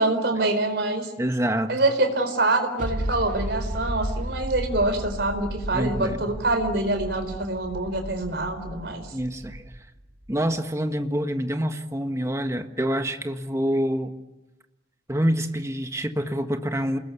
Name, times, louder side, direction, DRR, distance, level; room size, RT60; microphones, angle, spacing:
voice 1, 0.0-1.1 1.7-9.0, right 2 dB, 70° right, 7 dB, 4.4 m, -25 dB
voice 2, 1.2-1.7 5.7-6.3 9.1-9.6 10.3-14.1 15.1-17.0, equal, 15° right, 7 dB, 1.5 m, -26 dB
sound 1, 2.8-10.3, equal, 50° right, 2.1 m, -34 dB
29.0 x 20.5 x 8.4 m, 1.0 s
head